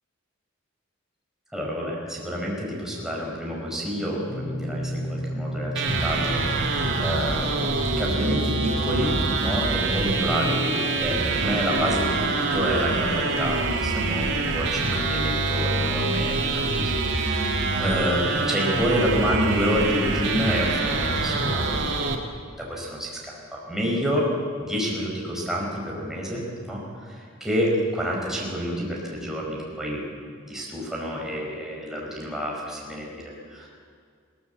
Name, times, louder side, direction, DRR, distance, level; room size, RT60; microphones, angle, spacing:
voice 1, 1.5-24.3 24.6-26.4 26.7-30.0 30.5-33.7, equal, ahead, -3 dB, 5.0 m, -28 dB
sound 1, 4.3-17.2, equal, 55° left, 3.6 m, -37 dB
sound 2, 5.8-22.2, right 3 dB, 60° right, 2.2 m, -25 dB
21.5 x 17.5 x 8.0 m, 2.2 s
head